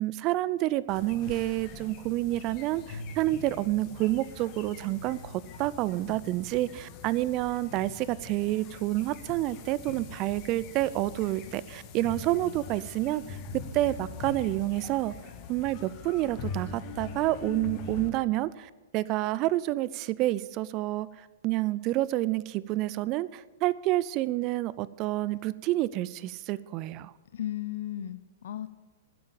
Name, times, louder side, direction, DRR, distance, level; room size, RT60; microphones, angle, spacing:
voice 1, 0.0-13.4 13.7-15.1 15.5-21.1 21.4-27.1, right 16 dB, 40° right, 19 dB, 0.5 m, -29 dB
sound 1, 0.9-18.1, left 5 dB, 40° left, 1.8 m, -42 dB
voice 2, 27.3-28.7, left 12 dB, 65° left, 13 dB, 0.7 m, -35 dB
12.5 x 10.0 x 6.9 m, 1.2 s
figure-of-eight pair, 110°, 0 cm